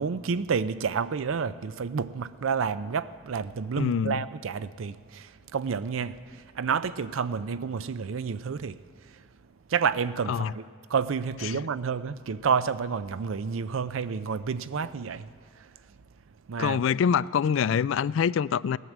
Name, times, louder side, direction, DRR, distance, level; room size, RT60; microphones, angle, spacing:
voice 1, 0.0-8.8 9.7-10.6 10.9-15.3 16.5-16.8, right 6 dB, 80° right, 0.5 m, -29 dB
voice 2, 3.8-4.2 10.3-10.5 11.4-11.6 16.6-18.8, left 7 dB, 70° left, 0.3 m, -25 dB
17.0 x 11.0 x 7.3 m
head